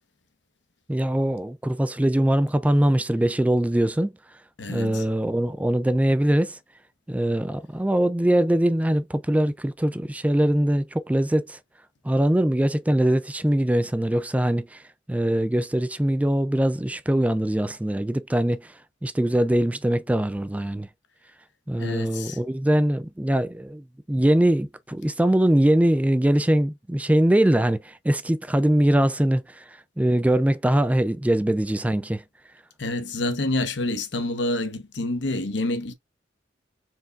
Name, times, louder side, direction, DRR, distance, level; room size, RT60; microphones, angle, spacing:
voice 1, 0.9-4.1 4.7-6.6 7.1-11.6 12.0-14.8 15.1-18.7 19.0-20.9 21.7-32.2, right 1 dB, 10° right, 0.3 m, -22 dB
voice 2, 4.6-5.0 21.8-22.4 32.8-35.9, left 2 dB, 75° left, 1.0 m, -28 dB
4.5 x 3.4 x 2.4 m
head